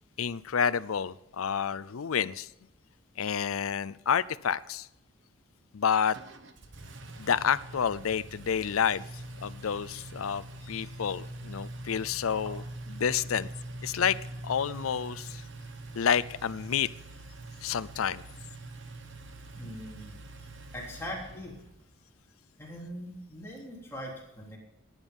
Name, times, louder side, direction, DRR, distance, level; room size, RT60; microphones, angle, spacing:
voice 1, 0.2-2.5 3.2-4.9 5.7-6.2 7.2-12.6 12.9-13.5 13.8-14.2 14.4-15.5 15.9-16.9 17.6-18.2, left 7 dB, 85° left, 0.5 m, -29 dB
Engine, 6.1-21.8, right 2 dB, 60° right, 1.2 m, -44 dB
voice 2, 19.6-20.1 20.7-21.6 22.6-24.6, equal, 10° left, 3.4 m, -41 dB
19.0 x 9.8 x 5.4 m
head